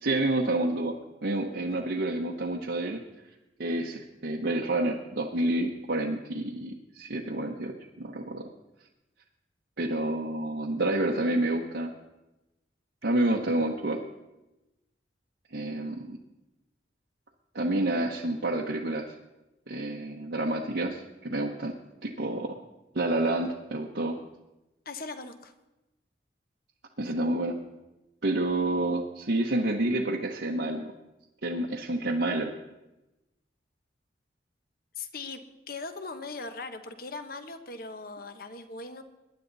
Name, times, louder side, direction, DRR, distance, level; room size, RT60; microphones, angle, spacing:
voice 1, 0.0-3.0 3.6-8.5 9.8-11.9 13.0-14.0 15.5-16.2 17.5-19.1 19.7-21.7 22.0-22.6 22.9-24.1 27.0-27.6 28.2-30.9 31.4-32.5, right 1 dB, 70° right, -1 dB, 1.1 m, -29 dB
voice 2, 24.8-25.5 35.0-39.0, left 3 dB, 55° left, 8 dB, 1.1 m, -39 dB
22.5 x 10.5 x 4.0 m, 0.99 s
head